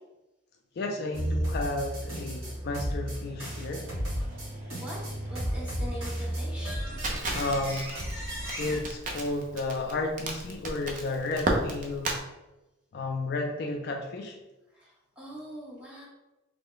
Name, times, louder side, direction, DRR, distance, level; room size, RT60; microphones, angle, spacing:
voice 1, 0.8-3.9 7.3-7.9 8.6-12.2 12.9-14.4, left 2 dB, 50° left, 2 dB, 0.3 m, -32 dB
sound 1, 1.1-8.8, equal, 65° right, 1.4 m, -33 dB
voice 2, 4.7-6.8 14.8-16.1, equal, 5° right, -6 dB, 0.9 m, -42 dB
Crackle, 7.0-12.2, right 2 dB, 40° right, 0.5 m, -33 dB
3.2 x 2.1 x 3.7 m, 0.99 s
head